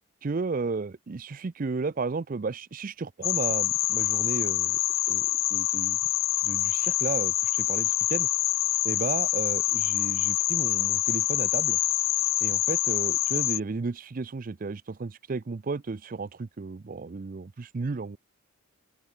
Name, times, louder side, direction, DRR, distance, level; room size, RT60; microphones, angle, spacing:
voice 1, 0.2-4.8 5.1-6.0 6.4-8.3 8.8-11.8 12.4-18.2, right 4 dB, 40° right, 0.4 m, -33 dB
sound 1, 3.2-13.6, left 17 dB, 60° left, 0.5 m, -26 dB
open air
head